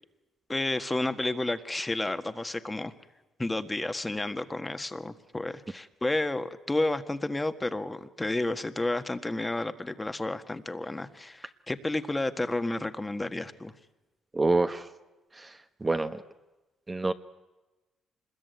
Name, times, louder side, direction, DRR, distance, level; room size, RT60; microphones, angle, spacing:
voice 1, 0.5-2.9 3.4-13.7, left 2 dB, 15° left, 9 dB, 1.6 m, -31 dB
voice 2, 14.3-14.9 15.3-16.2 16.9-17.1, right 2 dB, 20° right, 8 dB, 1.1 m, -27 dB
26.0 x 21.0 x 9.4 m, 1.1 s
cardioid pair, 90°, 0 cm